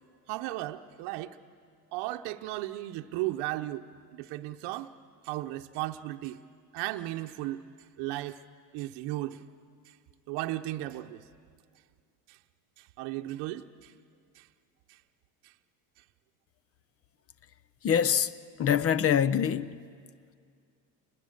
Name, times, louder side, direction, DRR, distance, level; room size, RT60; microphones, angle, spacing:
voice 1, 0.3-1.4 1.9-3.9 4.1-4.9 5.2-6.4 6.7-7.6 8.0-8.4 8.7-9.4 9.9-10.0 10.3-11.2 12.3-12.4 12.8-13.9 14.3-14.5 14.9-15.0 15.4-15.5, right 16 dB, 75° right, 0.8 m, -35 dB
voice 2, 17.8-19.8, left 8 dB, 35° left, 0.6 m, -25 dB
29.5 x 21.0 x 6.6 m
supercardioid pair, 105°, 41 cm